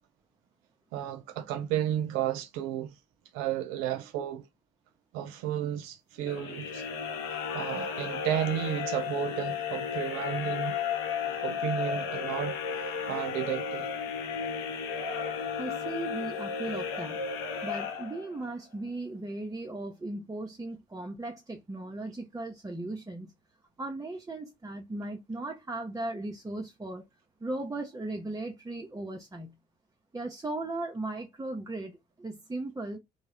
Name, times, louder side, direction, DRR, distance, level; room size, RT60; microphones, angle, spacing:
voice 1, 0.9-2.9 3.3-4.4 5.1-6.8 7.5-10.8 11.4-13.9, right 11 dB, 80° right, 0.4 m, -33 dB
sound 1, 6.2-18.5, left 6 dB, 80° left, 0.6 m, -34 dB
voice 2, 15.5-23.3 23.8-27.0 27.4-29.5 30.1-33.0, right 2 dB, 15° right, 0.6 m, -37 dB
2.3 x 2.0 x 2.8 m
hypercardioid pair, 50°, 20 cm